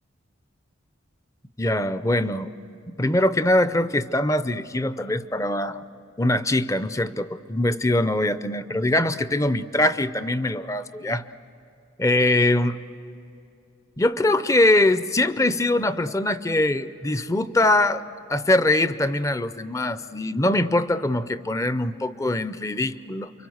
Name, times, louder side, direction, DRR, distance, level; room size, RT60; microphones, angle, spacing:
voice 1, 1.6-2.5 2.9-5.8 6.2-11.3 12.0-12.8 14.0-18.0 18.3-23.3, left 1 dB, 15° left, 13 dB, 0.6 m, -22 dB
29.0 x 24.0 x 7.9 m, 2.7 s
head